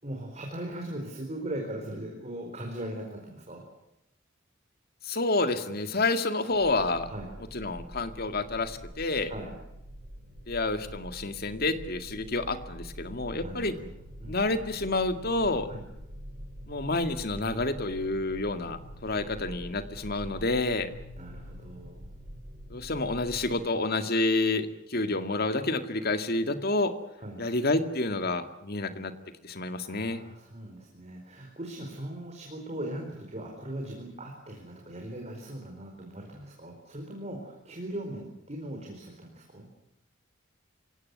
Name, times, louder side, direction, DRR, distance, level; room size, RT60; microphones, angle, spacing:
voice 1, 0.0-3.6 7.0-7.3 9.3-9.5 13.4-14.3 15.7-15.8 21.1-22.1 27.2-27.4 29.8-39.7, right 1 dB, 35° right, 1 dB, 4.5 m, -39 dB
voice 2, 5.0-7.1 7.5-9.3 10.5-13.7 14.3-15.7 16.7-20.9 22.7-26.9 27.4-29.1 29.4-30.2, left 2 dB, 50° left, 9 dB, 2.1 m, -29 dB
sound 1, 6.5-23.6, equal, 50° right, 5.9 m, -45 dB
27.0 x 17.0 x 9.7 m, 0.86 s
head